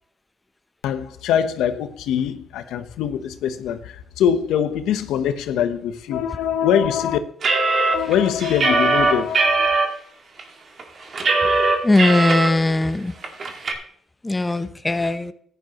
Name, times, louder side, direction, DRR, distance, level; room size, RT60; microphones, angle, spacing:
voice 1, 0.8-7.2 7.9-9.7, left 9 dB, 90° left, 0.9 m, -23 dB
sound 1, 7.4-9.9 10.4-10.5 10.8-12.5 12.8-12.9 13.2-13.7, right 3 dB, 50° right, 2.0 m, -19 dB
voice 2, 11.8-13.1 14.2-15.3, left 2 dB, 15° left, 0.7 m, -19 dB
14.0 x 10.0 x 3.0 m
cardioid pair, 90°, 0 cm